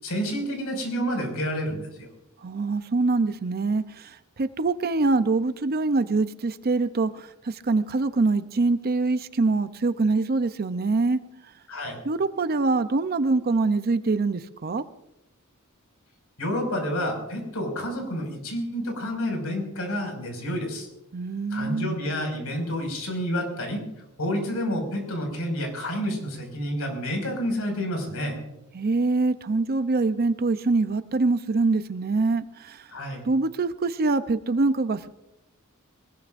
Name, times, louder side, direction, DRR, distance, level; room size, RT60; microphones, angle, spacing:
voice 1, 0.0-2.1 11.7-12.0 16.4-20.9 21.5-23.8 24.2-28.4 32.9-33.3, equal, 75° left, 3 dB, 5.4 m, -29 dB
voice 2, 2.4-11.2 12.0-14.8 21.1-21.9 28.7-32.9 33.2-35.1, right 3 dB, 45° right, 12 dB, 0.6 m, -24 dB
23.0 x 20.5 x 2.5 m, 0.88 s
head